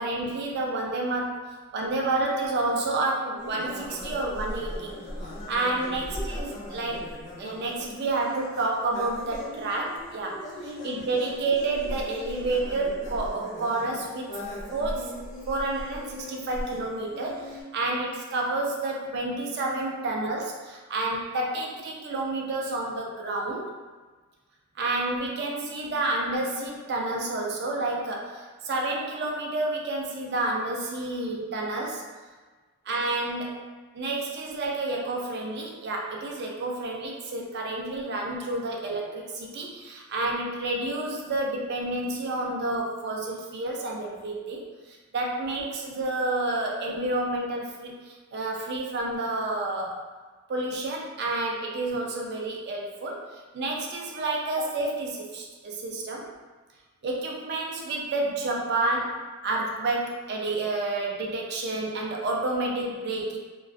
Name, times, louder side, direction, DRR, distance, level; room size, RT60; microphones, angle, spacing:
voice 1, 0.0-1.4 1.7-4.9 5.5-14.3 14.7-15.1 15.5-23.7 24.8-32.0 32.9-33.6 33.9-50.0 50.5-56.3 57.0-59.2 59.4-63.4, right 2 dB, 45° right, -1 dB, 0.4 m, -30 dB
sound 1, 3.4-17.6, left 1 dB, 30° left, 0.4 m, -38 dB
2.3 x 2.2 x 2.4 m, 1.4 s
head